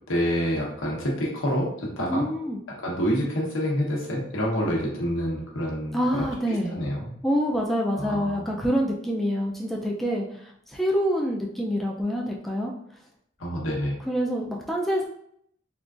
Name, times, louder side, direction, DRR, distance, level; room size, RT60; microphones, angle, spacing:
voice 1, 0.1-2.3 2.7-7.1 7.9-8.5 13.4-13.9, equal, 85° left, -2 dB, 0.9 m, -27 dB
voice 2, 2.1-2.6 5.9-6.7 7.2-10.2 10.7-12.7 14.1-15.1, equal, ahead, -2 dB, 0.3 m, -26 dB
3.7 x 2.4 x 2.4 m, 0.70 s
head